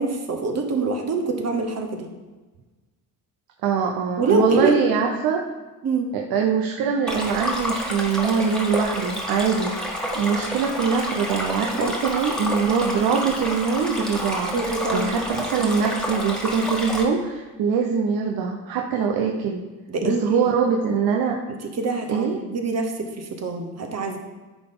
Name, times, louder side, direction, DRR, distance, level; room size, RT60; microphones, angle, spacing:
voice 1, 0.0-2.1 4.2-4.7 5.8-6.1 11.7-11.9 14.5-15.2 19.9-20.4 21.8-24.2, right 3 dB, 45° right, 4 dB, 1.0 m, -25 dB
voice 2, 3.6-5.4 6.1-19.6 20.0-21.3 22.1-22.4, right 6 dB, 80° right, 1 dB, 0.8 m, -23 dB
Stream, 7.1-17.0, equal, ahead, 1.4 m, -29 dB
10.5 x 4.0 x 3.7 m, 1.2 s
cardioid pair, 90°, 36 cm